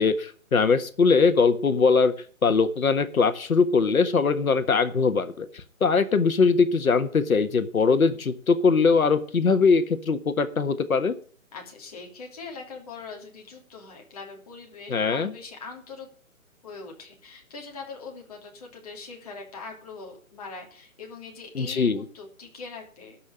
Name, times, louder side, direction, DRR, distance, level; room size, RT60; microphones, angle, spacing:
voice 1, 0.0-2.1 2.4-11.1 14.9-15.3 21.5-22.0, left 4 dB, 70° left, 10 dB, 1.6 m, -21 dB
voice 2, 11.5-16.1 16.6-23.2, left 4 dB, 25° left, 0 dB, 2.8 m, -42 dB
13.0 x 5.8 x 8.8 m, 0.43 s
hypercardioid pair, 175°, 43 cm